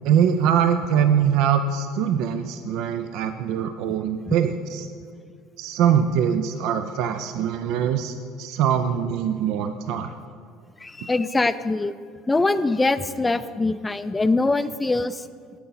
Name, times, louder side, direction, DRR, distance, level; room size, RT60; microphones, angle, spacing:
voice 1, 0.0-4.9 5.6-10.1, right 8 dB, 70° right, 9 dB, 0.4 m, -23 dB
voice 2, 10.8-11.9 12.3-15.3, left 2 dB, 15° left, 12 dB, 0.3 m, -23 dB
9.5 x 8.2 x 4.0 m, 2.2 s
supercardioid pair, 95°, 0 cm